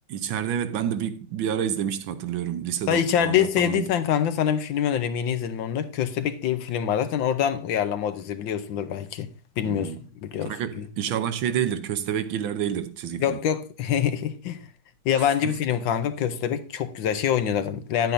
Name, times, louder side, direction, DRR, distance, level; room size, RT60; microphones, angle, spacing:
voice 1, 0.1-3.9 9.6-10.0 10.4-13.4 15.2-15.6, right 9 dB, 80° right, 1.5 m, -29 dB
voice 2, 2.9-9.3 9.6-9.9 10.2-10.9 13.2-14.7 15.0-18.1, left 9 dB, 75° left, 1.5 m, -25 dB
9.9 x 9.0 x 2.6 m
omnidirectional pair, 2.2 m